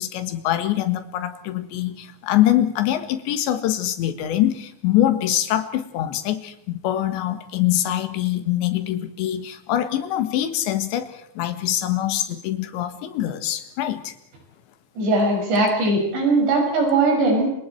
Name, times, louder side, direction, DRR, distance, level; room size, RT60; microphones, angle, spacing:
voice 1, 0.0-14.1, left 12 dB, 80° left, 10 dB, 3.8 m, -24 dB
voice 2, 15.0-17.5, right 2 dB, 75° right, 0 dB, 8.9 m, -19 dB
29.0 x 25.5 x 4.6 m, 0.69 s
omnidirectional pair, 5.1 m